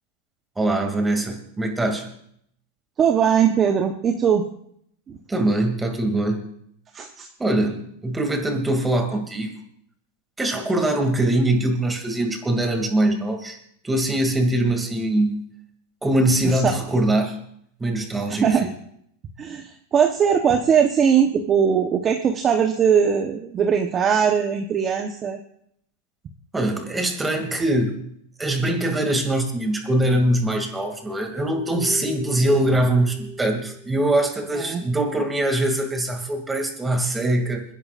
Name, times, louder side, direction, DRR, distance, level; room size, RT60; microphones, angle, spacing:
voice 1, 0.6-2.1 5.3-6.4 7.4-9.5 10.4-13.6 13.8-15.4 16.0-17.4 17.8-18.7 26.5-28.1 28.4-37.6, right 1 dB, 10° right, 3 dB, 2.6 m, -22 dB
voice 2, 3.0-4.4 5.1-5.2 6.9-7.3 16.4-16.8 18.3-18.7 19.4-25.4 34.6-34.8, right 7 dB, 25° right, 4 dB, 1.0 m, -20 dB
sound 1, 30.3-35.9, left 2 dB, 80° left, 3.5 m, -39 dB
29.0 x 10.5 x 2.6 m, 0.68 s
supercardioid pair, 135°, 0 cm